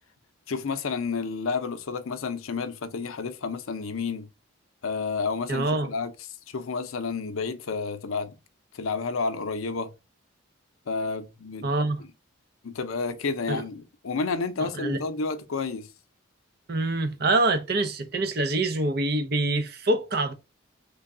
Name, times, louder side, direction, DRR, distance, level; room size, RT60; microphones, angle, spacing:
voice 1, 0.5-4.3 4.8-6.1 6.5-8.3 8.7-9.9 10.9-11.7 12.6-15.9, left 4 dB, 85° left, 0.5 m, -30 dB
voice 2, 5.5-5.9 11.6-12.0 13.5-13.6 14.6-15.0 16.7-20.3, right 2 dB, 50° right, 0.5 m, -25 dB
3.3 x 2.2 x 3.6 m
head